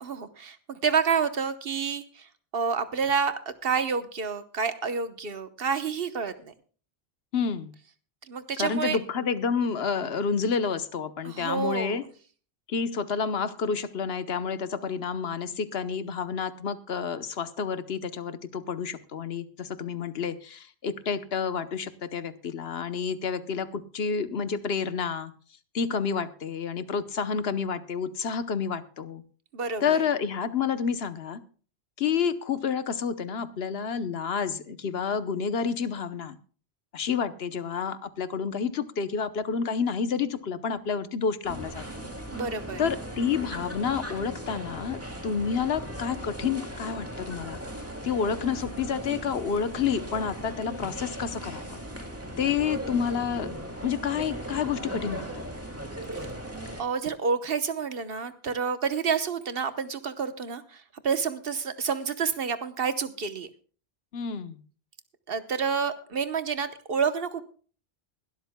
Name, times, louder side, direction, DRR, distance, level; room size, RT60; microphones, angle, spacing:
voice 1, 0.0-6.5 8.3-9.0 11.2-12.0 29.5-30.1 42.3-42.8 56.8-63.5 65.3-67.4, right 6 dB, 65° right, 11 dB, 1.2 m, -29 dB
voice 2, 7.3-7.7 8.6-12.0 12.7-25.3 25.7-29.2 29.8-31.4 32.0-36.4 36.9-41.8 42.8-47.6 48.0-51.8 52.4-55.4 64.1-64.6, left 6 dB, 70° left, 13 dB, 1.1 m, -29 dB
sound 1, 41.4-56.8, right 1 dB, 15° right, 2.1 m, -38 dB
21.5 x 12.5 x 2.2 m, 0.41 s
omnidirectional pair, 1.1 m